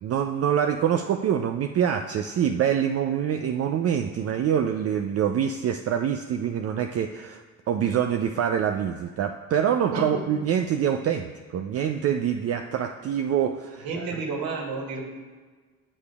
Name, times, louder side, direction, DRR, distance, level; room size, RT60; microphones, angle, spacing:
voice 1, 0.0-14.1, right 9 dB, 35° right, 6 dB, 0.5 m, -25 dB
voice 2, 9.9-10.4 13.8-15.0, right 3 dB, 60° right, 0 dB, 2.4 m, -31 dB
15.0 x 6.7 x 2.4 m, 1.4 s
hypercardioid pair, 65°, 41 cm